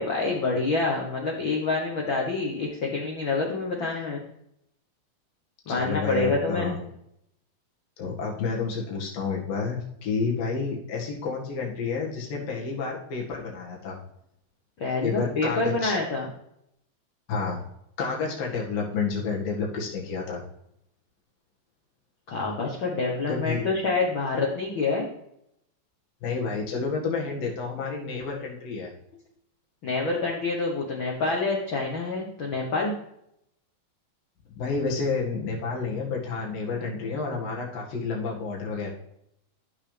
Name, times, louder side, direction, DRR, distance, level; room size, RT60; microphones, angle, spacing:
voice 1, 0.0-4.2 5.7-6.8 14.8-16.3 22.3-25.1 29.8-32.9, left 3 dB, 55° left, -2 dB, 1.5 m, -27 dB
voice 2, 5.7-6.8 8.0-14.0 15.0-16.0 17.3-17.7 18.0-20.4 23.3-23.7 26.2-28.9 34.6-38.9, left 4 dB, 80° left, -2 dB, 3.7 m, -30 dB
13.5 x 6.5 x 3.4 m, 0.77 s
omnidirectional pair, 4.0 m